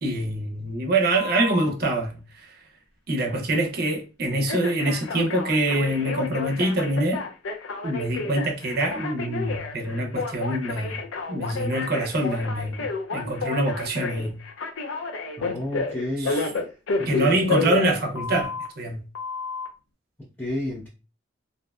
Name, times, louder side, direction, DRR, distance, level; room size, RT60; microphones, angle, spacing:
voice 1, 0.0-2.6 3.1-7.2 7.8-11.0 11.3-14.4 16.2-16.5 17.1-19.0, right 1 dB, 50° right, 0.5 m, -25 dB
Telephone, 1.1-1.7 4.5-18.7 19.1-19.7, left 4 dB, 85° left, 0.5 m, -31 dB
voice 2, 15.4-16.7 17.0-17.4 20.4-20.9, left 1 dB, 10° left, 0.5 m, -31 dB
2.6 x 2.1 x 2.3 m
head